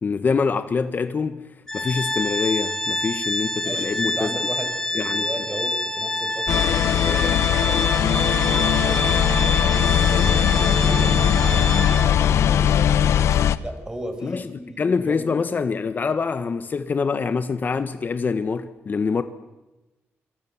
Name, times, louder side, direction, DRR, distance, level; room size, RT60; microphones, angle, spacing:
voice 1, 0.0-4.4 4.9-5.3 14.2-14.5 14.8-19.2, left 5 dB, 40° left, 1.4 m, -25 dB
Organ, 1.7-12.3, left 1 dB, 10° left, 3.2 m, -27 dB
voice 2, 3.6-9.3 10.0-12.9 13.3-15.3, right 1 dB, 15° right, 5.9 m, -36 dB
sound 1, 6.5-13.6, left 9 dB, 85° left, 1.0 m, -19 dB
Wind instrument woodwind instrument, 7.8-12.3, right 6 dB, 60° right, 1.4 m, -32 dB
27.0 x 26.5 x 7.4 m
cardioid pair, 105°, 5 cm